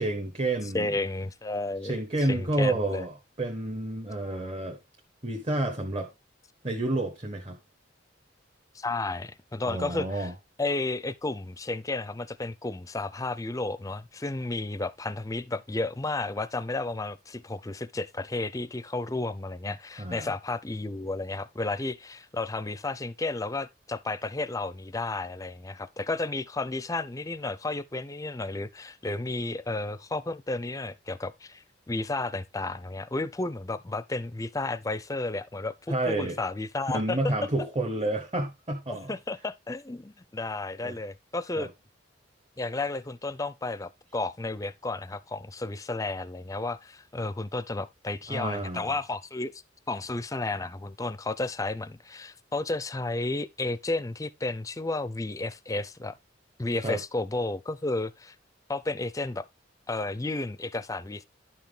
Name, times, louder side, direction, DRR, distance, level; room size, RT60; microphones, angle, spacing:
voice 1, 0.0-0.9 1.8-4.8 5.2-6.1 6.6-7.6 9.7-10.3 20.0-20.3 35.9-36.4 36.9-39.1 40.8-41.0 41.6-41.7 48.3-48.9 56.8-57.0, right 2 dB, 30° right, 1.2 m, -30 dB
voice 2, 0.7-1.9 2.3-3.1 8.7-10.3 10.6-37.3 38.9-41.7 42.6-49.5 49.9-56.2 56.6-58.4 58.7-59.5 59.9-61.2, left 2 dB, 20° left, 0.5 m, -32 dB
11.0 x 5.8 x 3.3 m
head